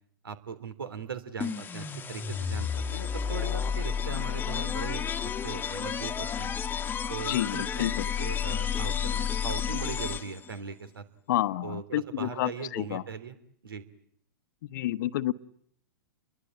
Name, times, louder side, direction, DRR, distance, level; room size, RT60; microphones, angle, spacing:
voice 1, 0.2-5.1 5.4-6.5 7.1-11.0 11.6-13.4 13.6-13.8, right 6 dB, 80° right, 12 dB, 3.1 m, -39 dB
sound 1, 1.4-10.5, left 8 dB, 15° left, 1.4 m, -31 dB
voice 2, 7.3-8.0 11.3-13.0 14.7-15.3, left 14 dB, 60° left, 14 dB, 1.1 m, -29 dB
29.5 x 22.5 x 8.9 m, 0.66 s
hypercardioid pair, 110°, 12 cm